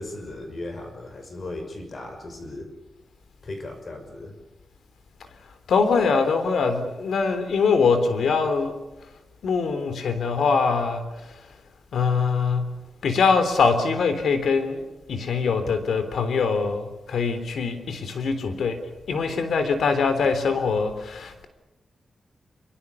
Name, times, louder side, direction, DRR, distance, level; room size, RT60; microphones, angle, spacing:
voice 1, 0.0-2.7 3.4-4.3, left 2 dB, 40° left, 6 dB, 5.9 m, -36 dB
voice 2, 5.7-8.7 9.4-11.0 11.9-12.7 13.0-14.8 15.1-18.8 19.1-21.5, left 5 dB, 90° left, 10 dB, 3.6 m, -23 dB
26.0 x 24.0 x 7.1 m, 1.0 s
wide cardioid pair, 150°, 0 cm